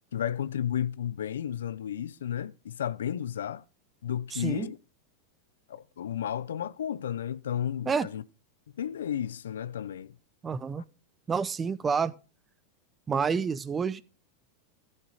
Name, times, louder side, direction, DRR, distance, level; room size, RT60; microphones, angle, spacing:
voice 1, 0.1-3.6 4.0-4.8 5.7-8.2 8.8-10.2 10.8-10.9, left 9 dB, 90° left, 0.5 m, -33 dB
voice 2, 4.3-4.7 7.9-8.1 10.4-10.8 11.3-12.1 13.1-14.0, right 5 dB, 20° right, 0.6 m, -28 dB
12.5 x 6.6 x 4.8 m
hypercardioid pair, 120°, 0 cm